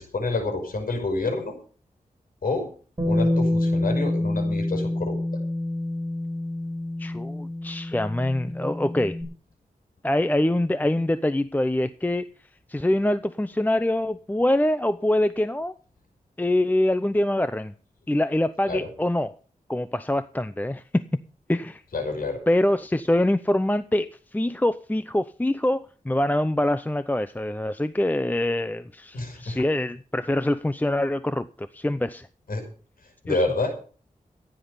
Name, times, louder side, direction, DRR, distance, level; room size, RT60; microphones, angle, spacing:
voice 1, 0.0-1.5 2.4-2.7 3.0-5.2 18.7-18.9 21.9-22.4 29.1-29.6 32.5-32.6 33.2-33.7, left 3 dB, 80° left, 5.6 m, -28 dB
Bass guitar, 3.0-9.2, left 1 dB, 25° right, 5.9 m, -27 dB
voice 2, 7.0-9.2 10.0-12.3 12.7-15.7 16.4-17.7 18.1-19.4 19.7-21.0 21.5-21.8 22.5-32.3 33.3-33.4, left 1 dB, 10° left, 0.7 m, -24 dB
15.5 x 10.0 x 5.5 m
wide cardioid pair, 90°, 15 cm